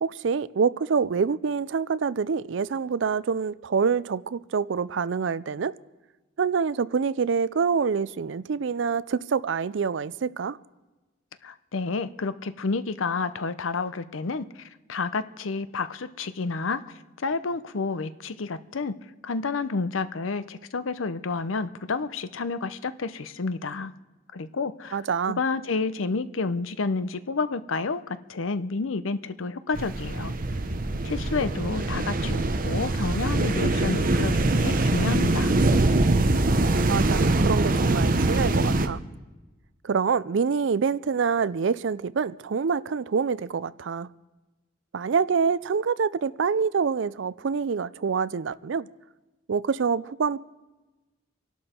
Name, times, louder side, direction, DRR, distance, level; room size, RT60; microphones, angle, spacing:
voice 1, 0.0-5.7 6.4-10.6 24.9-25.4 36.9-39.0 39.8-44.1 44.9-48.9 49.5-50.4, right 5 dB, 65° right, 0.4 m, -26 dB
voice 2, 11.4-18.9 19.2-23.9 24.3-25.0 25.3-30.3 31.0-35.6, left 4 dB, 85° left, 0.7 m, -30 dB
sound 1, 29.7-38.9, right 2 dB, 45° right, 0.8 m, -23 dB
27.0 x 11.5 x 4.4 m
head